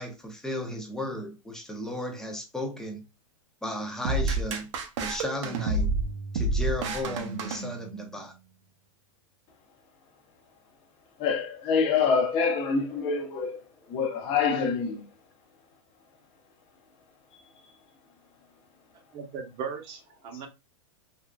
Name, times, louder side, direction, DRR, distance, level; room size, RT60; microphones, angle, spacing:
voice 1, 0.0-3.0 3.6-4.7 5.0-6.0 6.3-8.4 12.9-13.3, left 1 dB, 5° left, 0.5 m, -35 dB
sound 1, 4.0-8.2, right 2 dB, 60° right, 0.7 m, -29 dB
voice 2, 11.2-13.6 13.9-15.1, left 5 dB, 30° left, 0.8 m, -26 dB
voice 3, 19.1-20.5, right 6 dB, 35° right, 0.8 m, -37 dB
3.6 x 2.3 x 2.2 m
hypercardioid pair, 140°, 17 cm